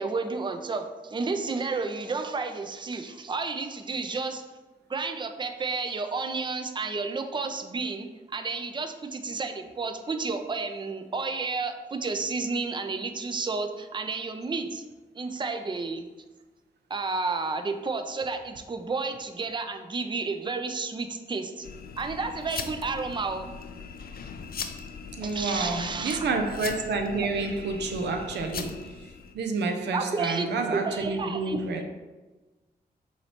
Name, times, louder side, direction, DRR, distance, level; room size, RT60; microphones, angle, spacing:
voice 1, 0.0-4.4 4.9-14.8 15.1-16.1 16.9-21.7 22.0-23.5 25.2-26.2 29.9-30.5 30.7-31.8, right 4 dB, 25° right, 7 dB, 0.5 m, -31 dB
sound 1, 21.6-29.4, left 6 dB, 60° left, 0.4 m, -40 dB
voice 2, 25.2-31.8, right 3 dB, 90° right, 5 dB, 0.5 m, -29 dB
5.5 x 3.2 x 2.9 m, 1.2 s
cardioid pair, 55°, 17 cm